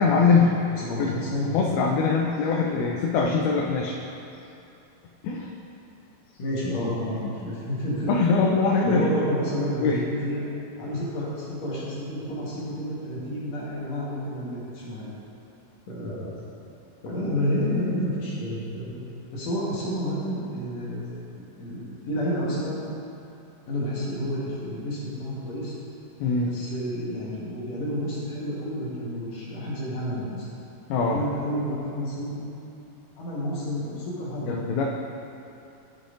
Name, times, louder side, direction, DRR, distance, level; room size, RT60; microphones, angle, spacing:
voice 1, 0.0-1.1 1.5-4.0 5.2-5.5 8.1-9.1 9.8-10.0 26.2-26.5 30.9-31.2 34.5-34.8, left 4 dB, 85° left, -1 dB, 2.5 m, -22 dB
voice 2, 0.8-1.6 6.4-8.1 8.4-10.4 10.8-15.1 15.9-16.3 17.0-19.0 19.3-21.1 21.3-22.8 23.7-25.8 26.4-30.5 31.1-32.4 33.2-34.5, equal, 60° left, -7 dB, 2.1 m, -30 dB
11.5 x 6.6 x 2.5 m, 2.9 s
omnidirectional pair, 4.3 m